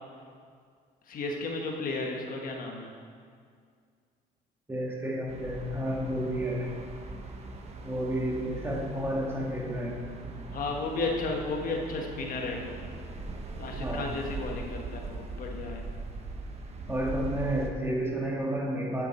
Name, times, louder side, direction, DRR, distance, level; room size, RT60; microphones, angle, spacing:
voice 1, 1.1-2.9 10.5-12.8 13.6-15.8, left 3 dB, 55° left, 1 dB, 1.3 m, -33 dB
voice 2, 4.7-6.7 7.8-10.0 13.8-14.0 16.9-19.1, right 1 dB, 15° right, -2 dB, 1.9 m, -31 dB
sound 1, 5.3-17.7, right 3 dB, 40° right, 1.2 m, -40 dB
9.6 x 9.0 x 4.4 m, 2.1 s
cardioid pair, 110°, 17 cm